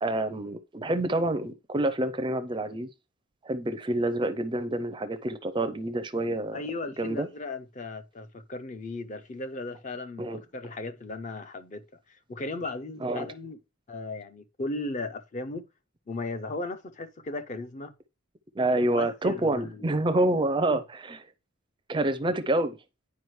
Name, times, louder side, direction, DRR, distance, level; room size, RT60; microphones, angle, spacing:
voice 1, 0.0-2.9 3.4-6.6 7.0-7.3 10.2-10.4 13.0-13.3 18.6-21.2 21.9-22.8, right 1 dB, 20° right, 0.4 m, -27 dB
voice 2, 6.5-11.8 12.1-13.6 13.9-15.6 16.1-18.0 18.9-19.9 20.7-20.8, left 2 dB, 35° left, 0.5 m, -36 dB
9.4 x 4.9 x 3.1 m
head